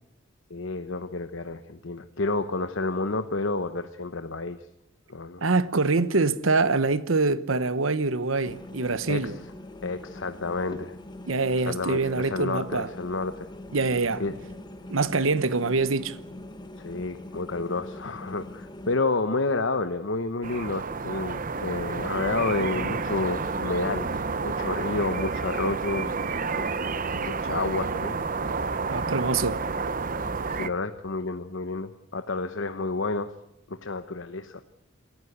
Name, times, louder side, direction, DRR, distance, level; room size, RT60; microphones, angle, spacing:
voice 1, 0.5-4.6 5.1-5.4 9.1-9.3 9.8-11.0 11.6-13.5 14.2-14.4 16.8-26.2 26.5-26.6 27.0-28.2 30.5-33.3 33.7-34.6, left 3 dB, 65° left, 1.0 m, -30 dB
voice 2, 5.4-9.3 11.3-12.9 13.7-14.2 14.9-16.2 28.9-29.6, right 3 dB, 85° right, 1.1 m, -24 dB
sound 1, 8.4-19.0, left 1 dB, 20° left, 1.6 m, -43 dB
sound 2, 20.4-30.7, right 4 dB, 45° right, 0.9 m, -30 dB
27.5 x 14.5 x 8.1 m
head